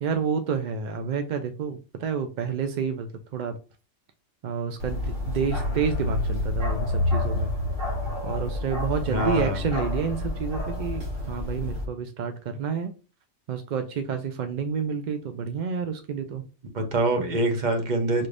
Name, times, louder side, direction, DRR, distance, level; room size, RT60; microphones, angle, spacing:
voice 1, 0.0-3.6 4.4-7.5 8.2-12.9 13.5-16.4, right 6 dB, 60° right, 7 dB, 0.5 m, -29 dB
Bark, 4.8-11.8, left 2 dB, 80° right, 2.8 m, -28 dB
voice 2, 9.1-9.6 16.7-18.3, right 2 dB, 40° right, 5 dB, 0.9 m, -24 dB
5.7 x 3.3 x 2.5 m, 0.34 s
omnidirectional pair, 1.3 m